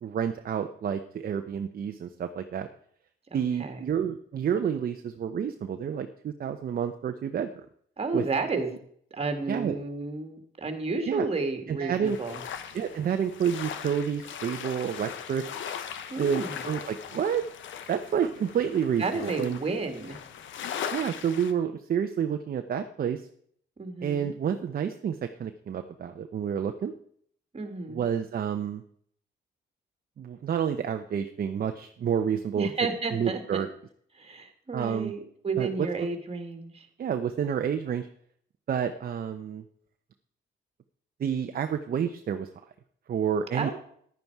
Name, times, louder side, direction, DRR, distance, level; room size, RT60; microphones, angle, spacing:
voice 1, 0.0-2.7 3.3-7.5 8.1-8.2 9.5-9.8 11.1-11.3 11.7-12.2 12.7-15.5 16.2-17.5 17.9-19.6 20.9-23.3 24.0-26.9 27.9-28.8 30.2-32.7 33.1-33.7 34.7-35.1 35.6-35.9 37.0-38.1 38.7-39.6 41.2-42.5 43.1-43.7, right 8 dB, 50° right, 7 dB, 0.8 m, -29 dB
voice 2, 3.3-3.8 8.0-8.8 9.1-12.4 16.1-16.6 19.0-20.2 23.8-24.3 27.5-28.1 32.5-33.7 34.1-36.9 43.5-43.7, right 3 dB, 30° right, 7 dB, 2.1 m, -32 dB
sound 1, 12.0-21.5, left 8 dB, 75° left, 1.1 m, -39 dB
10.5 x 9.5 x 4.7 m, 0.63 s
cardioid pair, 90°, 20 cm